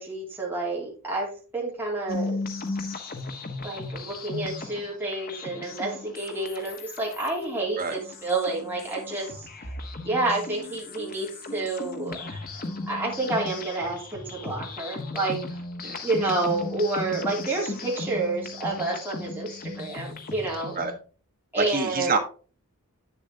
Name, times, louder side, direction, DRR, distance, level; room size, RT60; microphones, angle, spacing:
voice 1, 0.0-2.4 3.6-9.3 10.0-12.4 12.9-15.4 16.0-20.8 21.5-22.2, right 2 dB, 10° right, -4 dB, 2.7 m, -29 dB
sound 1, 2.1-21.0, left 3 dB, 40° left, 1.1 m, -36 dB
voice 2, 21.6-22.2, right 4 dB, 40° right, 3 dB, 1.2 m, -27 dB
8.9 x 7.0 x 2.7 m, 0.37 s
head